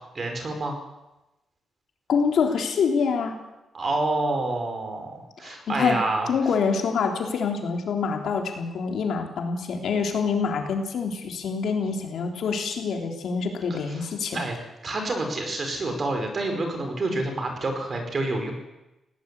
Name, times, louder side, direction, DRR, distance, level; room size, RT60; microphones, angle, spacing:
voice 1, 0.1-0.8 3.7-6.3 13.7-14.0 14.3-14.6 14.8-18.5, right 2 dB, 35° right, 5 dB, 4.9 m, -28 dB
voice 2, 2.1-3.4 5.4-6.0 6.3-14.4, left 5 dB, 65° left, 3 dB, 3.6 m, -26 dB
20.0 x 18.0 x 8.4 m, 0.98 s
wide cardioid pair, 155°, 0 cm